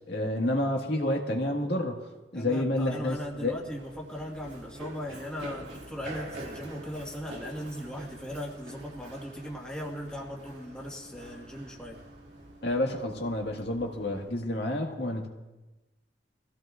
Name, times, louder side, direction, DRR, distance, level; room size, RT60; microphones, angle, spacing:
voice 1, 0.1-2.1 2.3-3.6 12.6-15.3, left 1 dB, 70° left, 1 dB, 1.8 m, -29 dB
voice 2, 2.3-12.0, equal, 5° left, -3 dB, 1.7 m, -38 dB
Run, 2.7-14.3, right 1 dB, 85° right, 2.3 m, -46 dB
23.5 x 16.0 x 2.5 m, 1.1 s
head